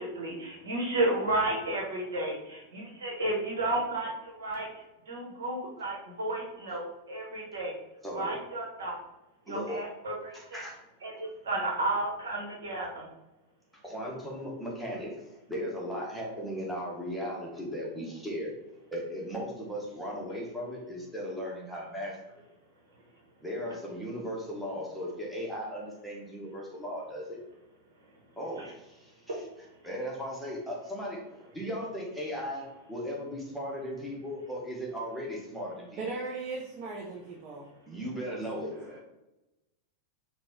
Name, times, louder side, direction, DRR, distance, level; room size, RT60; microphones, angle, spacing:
voice 1, 0.0-4.1 4.4-4.7 5.1-6.8 7.1-7.7 8.1-8.9 9.5-10.6 11.0-13.0 28.6-28.7, right 2 dB, 65° right, -1 dB, 1.2 m, -32 dB
voice 2, 8.0-8.4 9.5-9.8 10.3-10.8 13.8-18.5 18.9-22.2 23.4-27.4 28.4-29.1 29.8-36.0 37.9-39.0, equal, ahead, -4 dB, 1.2 m, -37 dB
voice 3, 36.0-37.7, right 3 dB, 40° right, -2 dB, 0.7 m, -37 dB
4.8 x 2.4 x 3.6 m, 0.96 s
figure-of-eight pair, 90°, 0 cm